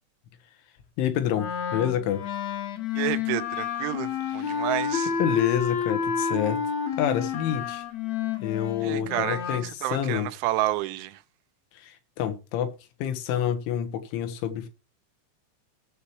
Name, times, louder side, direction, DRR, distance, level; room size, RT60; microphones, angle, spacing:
voice 1, 1.0-2.2 4.4-4.6 5.2-6.6 7.0-7.8 8.4-10.3 11.7-12.7 13.0-14.7, left 10 dB, 90° left, 3.8 m, -28 dB
Wind instrument woodwind instrument, 1.3-9.7, left 7 dB, 65° left, 1.8 m, -30 dB
voice 2, 3.0-5.1 8.8-11.2, right 15 dB, 90° right, 3.3 m, -30 dB
19.0 x 7.1 x 3.1 m
omnidirectional pair, 5.4 m